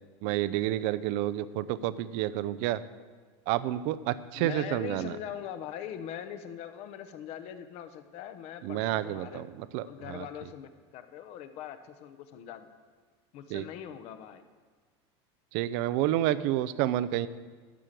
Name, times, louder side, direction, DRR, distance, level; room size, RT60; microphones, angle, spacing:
voice 1, 0.2-2.8 3.5-5.1 8.6-10.3 13.5-13.6 15.5-17.3, right 13 dB, 60° right, 16 dB, 0.5 m, -29 dB
voice 2, 4.3-9.5 9.8-12.7 13.3-14.4, left 9 dB, 50° left, 9 dB, 0.9 m, -41 dB
12.5 x 5.0 x 7.5 m, 1.5 s
supercardioid pair, 130°, 14 cm